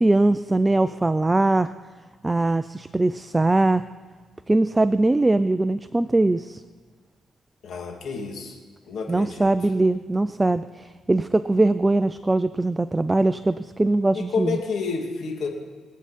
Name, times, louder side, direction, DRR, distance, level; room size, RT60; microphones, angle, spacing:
voice 1, 0.0-1.7 2.2-3.8 4.5-6.6 9.1-14.6, right 2 dB, 15° right, 13 dB, 0.4 m, -21 dB
voice 2, 7.6-8.6 8.9-9.5 14.1-15.5, left 5 dB, 65° left, 1 dB, 2.5 m, -29 dB
23.5 x 8.6 x 4.2 m, 1.5 s
cardioid pair, 90°, 0 cm